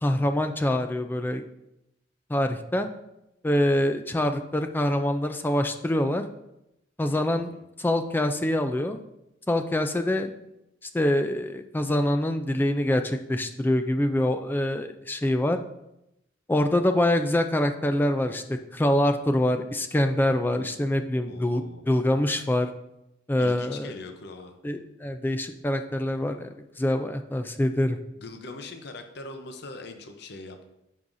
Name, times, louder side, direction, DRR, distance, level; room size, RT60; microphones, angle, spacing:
voice 1, 0.0-1.4 2.3-2.9 3.4-6.2 7.0-7.5 7.8-9.0 9.5-10.3 10.9-15.6 16.5-22.7 23.3-23.9 24.6-28.0, left 1 dB, 10° left, 7 dB, 0.3 m, -25 dB
voice 2, 7.3-7.6 21.3-21.9 23.4-24.6 28.2-30.7, left 2 dB, 60° left, 6 dB, 0.7 m, -41 dB
9.4 x 5.5 x 2.6 m, 0.86 s
head